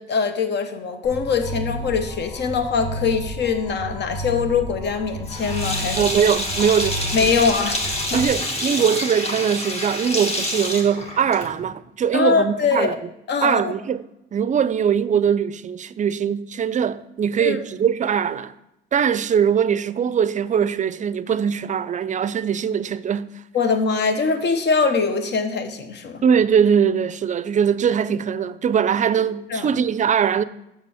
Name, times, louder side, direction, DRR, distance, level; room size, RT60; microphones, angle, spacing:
voice 1, 0.0-6.0 7.1-8.2 12.1-12.9 13.3-13.7 17.4-17.6 23.5-26.2 29.5-29.8, left 5 dB, 60° left, 1.0 m, -22 dB
sound 1, 1.0-8.2, right 1 dB, 90° left, 1.8 m, -32 dB
Sink (filling or washing), 5.3-11.7, left 1 dB, 30° left, 1.5 m, -27 dB
voice 2, 6.0-7.3 8.1-13.0 13.4-14.0 14.3-18.5 18.9-23.3 26.2-30.4, right 7 dB, 40° right, 0.4 m, -21 dB
6.7 x 6.3 x 4.9 m
cardioid pair, 90°, 20 cm